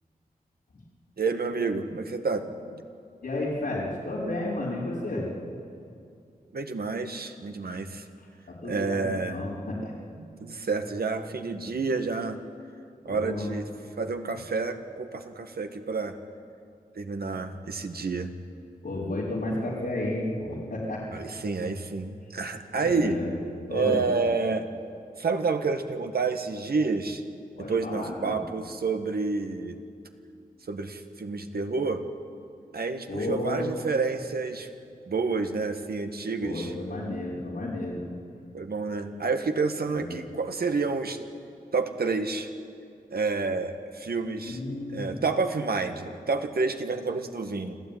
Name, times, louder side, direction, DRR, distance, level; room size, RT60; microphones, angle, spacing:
voice 1, 1.2-2.8 6.5-8.0 8.6-9.4 10.2-12.4 13.0-13.6 14.0-16.2 16.9-18.3 21.1-23.2 23.7-24.7 25.2-27.2 27.7-29.8 30.7-32.0 32.7-34.7 35.1-36.7 38.5-41.2 41.7-42.5 43.1-44.6 44.9-47.7, right 4 dB, 75° right, 6 dB, 1.7 m, -29 dB
voice 2, 3.2-5.3 8.2-9.9 13.0-13.6 18.8-21.2 22.8-23.4 23.7-24.0 27.6-28.4 33.1-33.7 36.4-38.0 39.8-40.1 44.4-45.1, left 1 dB, 85° left, -8 dB, 4.8 m, -32 dB
27.0 x 14.0 x 9.2 m, 2.4 s
cardioid pair, 55°, 16 cm